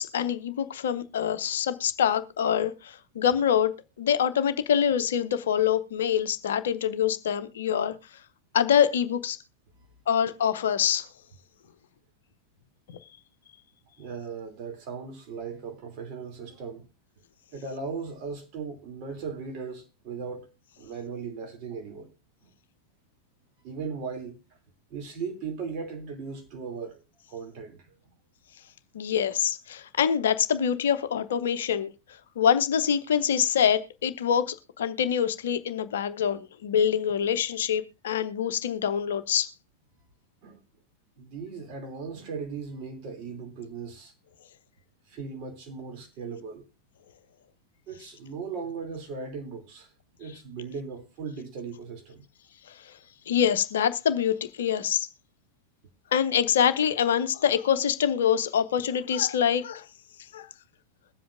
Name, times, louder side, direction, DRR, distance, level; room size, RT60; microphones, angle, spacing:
voice 1, 0.0-3.7 4.0-7.9 8.5-9.4 10.1-11.1 12.9-13.0 28.9-31.9 32.4-39.5 52.8-52.9 53.3-55.1 56.1-59.8 60.3-60.5, left 8 dB, 60° left, 0.7 m, -25 dB
voice 2, 14.0-16.9 17.5-20.5 20.8-22.1 23.6-24.4 24.9-27.0 27.3-27.8 40.4-40.6 41.2-44.1 45.1-46.6 47.9-49.9 50.2-52.2, right 5 dB, 40° right, 2.8 m, -37 dB
22.0 x 7.8 x 2.5 m
figure-of-eight pair, 90°, 0 cm